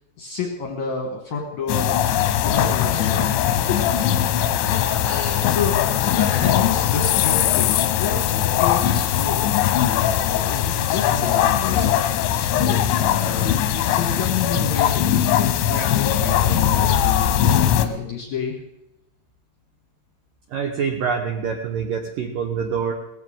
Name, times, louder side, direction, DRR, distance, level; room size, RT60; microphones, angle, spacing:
voice 1, 0.2-1.9 2.4-4.3 5.0-8.2 8.6-11.9 12.4-13.5 13.8-18.6, left 5 dB, 65° left, 2 dB, 2.0 m, -30 dB
sound 1, 1.7-17.9, left 10 dB, 90° left, 3.2 m, -20 dB
voice 2, 20.5-22.9, right 6 dB, 75° right, 3 dB, 2.0 m, -25 dB
18.5 x 15.0 x 3.8 m, 0.90 s
omnidirectional pair, 5.4 m